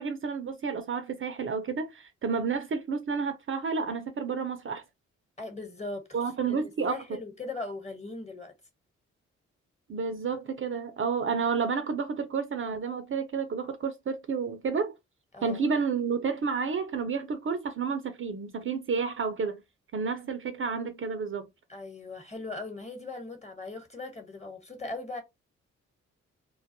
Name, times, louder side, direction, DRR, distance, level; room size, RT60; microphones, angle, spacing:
voice 1, 0.0-4.8 6.1-7.0 9.9-14.9 15.4-19.6 19.9-21.5, right 5 dB, 40° right, 0.6 m, -30 dB
voice 2, 5.4-8.5 15.3-15.6 21.7-25.2, left 2 dB, 20° left, 1.2 m, -39 dB
2.2 x 2.0 x 2.8 m
hypercardioid pair, 45°, 31 cm